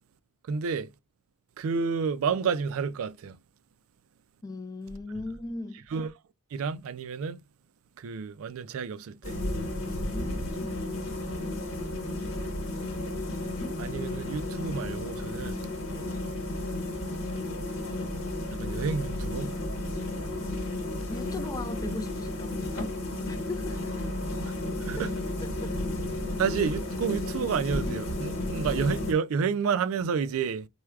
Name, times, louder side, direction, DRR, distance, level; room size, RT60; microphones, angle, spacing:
voice 1, 0.5-0.9 1.6-3.4 5.9-6.1 6.5-7.4 8.0-9.4 13.8-15.6 18.5-19.6 24.8-25.1 26.4-30.7, right 6 dB, 70° right, 0.3 m, -30 dB
voice 2, 4.4-5.9 9.7-10.9 15.8-16.2 21.1-23.0 23.3-23.9 25.0-25.1, left 2 dB, 15° left, 0.4 m, -38 dB
sound 1, 9.2-29.1, left 1 dB, 65° left, 1.2 m, -33 dB
4.6 x 2.2 x 2.3 m
head